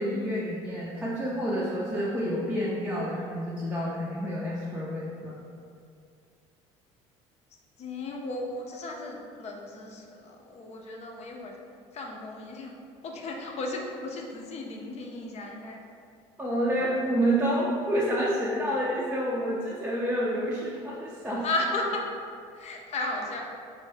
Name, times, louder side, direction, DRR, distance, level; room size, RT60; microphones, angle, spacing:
voice 1, 0.0-5.4 16.4-21.4, equal, 10° right, -7 dB, 0.6 m, -28 dB
voice 2, 7.8-11.6 11.9-12.7 13.0-15.8 16.7-16.9 21.4-22.0 22.5-23.4, left 2 dB, 45° left, 0 dB, 0.6 m, -34 dB
4.2 x 2.2 x 3.3 m, 2.4 s
supercardioid pair, 90°, 15 cm